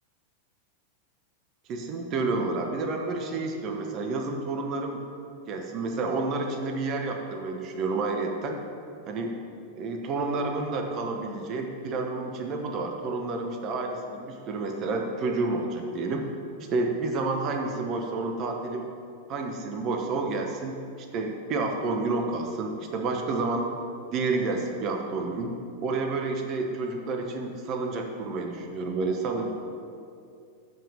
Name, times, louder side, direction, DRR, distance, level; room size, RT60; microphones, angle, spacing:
voice 1, 1.7-5.0 5.5-8.6 9.1-9.4 9.8-16.3 16.7-18.8 19.3-20.8 21.1-23.7 24.1-25.5 25.8-29.5, right 3 dB, 35° right, 3 dB, 0.8 m, -29 dB
7.4 x 5.4 x 6.5 m, 2.4 s
figure-of-eight pair, 90°, 0 cm